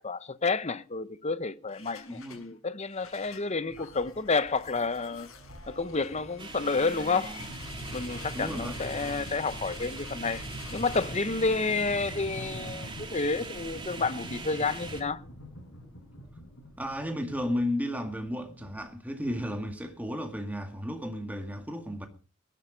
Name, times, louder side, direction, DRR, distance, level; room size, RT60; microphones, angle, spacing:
voice 1, 0.0-5.3 5.7-7.4 7.9-10.4 10.7-15.2, left 4 dB, 30° left, 0.9 m, -30 dB
sound 1, 1.7-2.5 2.8-19.8, left 1 dB, 70° left, 6.2 m, -44 dB
voice 2, 2.1-2.4 8.3-8.8 10.7-10.8 16.8-22.1, left 1 dB, 10° right, 2.1 m, -33 dB
sound 2, 6.4-15.0, right 3 dB, 25° right, 3.0 m, -42 dB
21.0 x 11.5 x 5.1 m
head